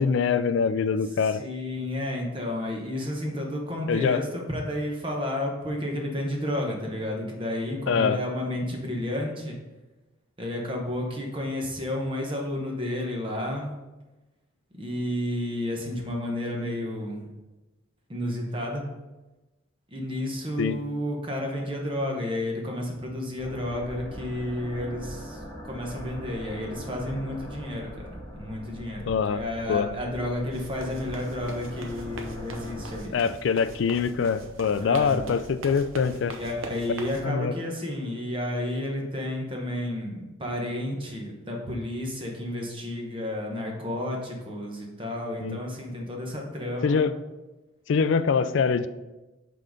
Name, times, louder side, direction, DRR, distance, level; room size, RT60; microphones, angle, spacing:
voice 1, 0.0-1.4 3.9-4.2 7.9-8.2 20.6-20.8 29.1-29.4 29.7-29.9 33.1-36.4 37.2-37.5 45.4-45.6 46.8-47.2 47.9-48.9, left 6 dB, 60° left, 13 dB, 0.3 m, -24 dB
voice 2, 1.3-9.6 10.4-13.7 14.8-17.3 18.1-18.8 19.9-33.2 34.8-35.2 36.2-47.0, left 1 dB, 25° right, 0 dB, 1.0 m, -31 dB
sound 1, 23.4-33.0, equal, 15° left, 1.3 m, -41 dB
sound 2, 30.5-37.2, right 2 dB, 75° right, 0.7 m, -42 dB
5.6 x 3.8 x 5.1 m, 1.1 s
head